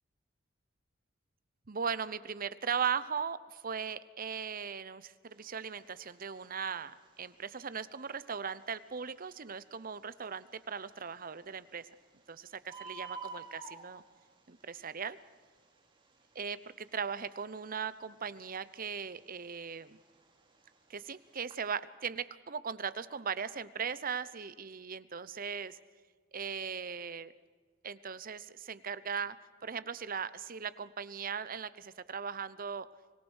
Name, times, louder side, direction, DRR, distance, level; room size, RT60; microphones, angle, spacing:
voice 1, 1.7-11.9 12.3-14.0 14.5-15.2 16.3-20.0 20.9-25.8 26.3-27.3 27.8-29.4 29.6-32.9, right 6 dB, 45° right, 16 dB, 0.8 m, -38 dB
Bird, 5.3-21.7, right 4 dB, 25° right, 3.7 m, -53 dB
25.0 x 18.5 x 6.4 m, 1.5 s
head